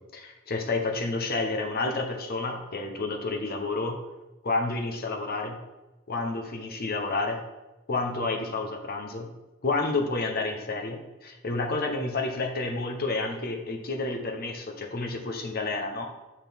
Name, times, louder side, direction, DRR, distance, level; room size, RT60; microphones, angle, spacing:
voice 1, 0.1-4.0 4.4-5.6 6.1-7.4 7.9-9.3 9.6-16.1, left 3 dB, 50° left, 3 dB, 0.9 m, -30 dB
6.5 x 6.1 x 3.6 m, 1.1 s
head